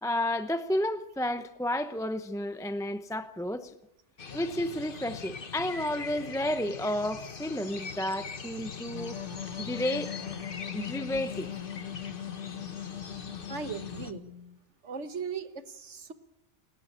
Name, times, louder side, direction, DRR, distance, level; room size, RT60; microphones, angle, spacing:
voice 1, 0.0-3.7 4.3-9.2 9.6-10.1 10.7-11.5, left 1 dB, 5° left, 0.6 m, -31 dB
sound 1, 4.2-14.1, left 5 dB, 50° left, 1.4 m, -42 dB
sound 2, 8.9-14.6, left 10 dB, 90° left, 1.5 m, -40 dB
voice 2, 13.5-14.2 14.8-16.1, right 5 dB, 80° right, 1.7 m, -38 dB
29.0 x 12.0 x 8.6 m
omnidirectional pair, 1.2 m